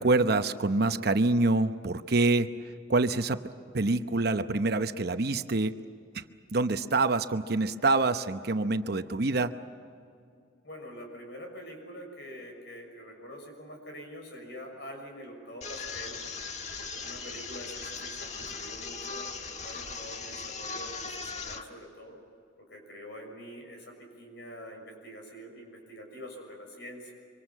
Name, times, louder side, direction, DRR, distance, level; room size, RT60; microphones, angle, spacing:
voice 1, 0.0-2.5 2.9-3.4 3.7-5.7 6.1-6.2 6.5-9.5, right 3 dB, 55° right, 10 dB, 0.9 m, -26 dB
voice 2, 10.6-16.2 16.8-22.2 22.6-27.1, equal, 65° left, 2 dB, 6.6 m, -45 dB
sound 1, 15.6-21.6, left 4 dB, 40° left, 1.5 m, -39 dB
25.5 x 25.5 x 7.4 m, 2.4 s
head